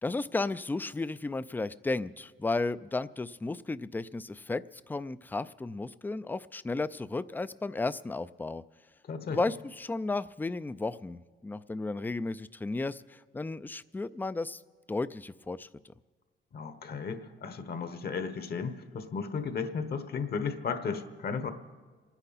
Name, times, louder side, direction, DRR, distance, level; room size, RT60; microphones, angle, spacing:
voice 1, 0.0-8.6 9.3-14.6 14.9-15.7, left 3 dB, 10° left, 15 dB, 0.4 m, -34 dB
voice 2, 9.1-9.4 16.5-21.5, left 5 dB, 50° left, 10 dB, 1.1 m, -34 dB
28.0 x 9.9 x 4.1 m, 1.4 s
cardioid pair, 90°, 20 cm